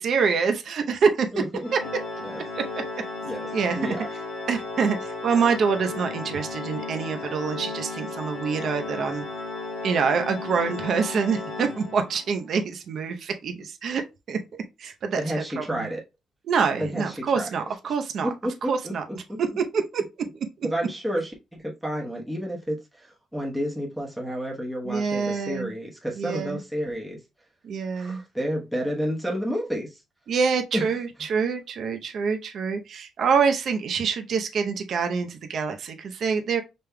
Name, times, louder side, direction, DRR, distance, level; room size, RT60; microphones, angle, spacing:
voice 1, 0.0-1.3 3.5-4.0 4.5-9.2 9.8-14.0 14.3-14.4 14.8-15.2 15.6-15.9 16.5-18.3 18.7-19.0 19.6-20.0 24.8-25.7 26.2-26.6 27.6-28.2 30.3-36.6, right 5 dB, 60° right, 0.7 m, -26 dB
voice 2, 1.3-1.7 2.2-2.4 3.2-3.5 3.7-4.1 15.2-16.0 16.8-17.5 17.8-17.9 18.2-18.9 19.3-19.4 20.6-27.2 28.0-30.0 30.7-30.9, equal, 5° right, 1.0 m, -30 dB
Organ, 1.6-12.3, left 3 dB, 80° left, 1.2 m, -34 dB
5.3 x 3.4 x 2.2 m
cardioid pair, 120°, 0 cm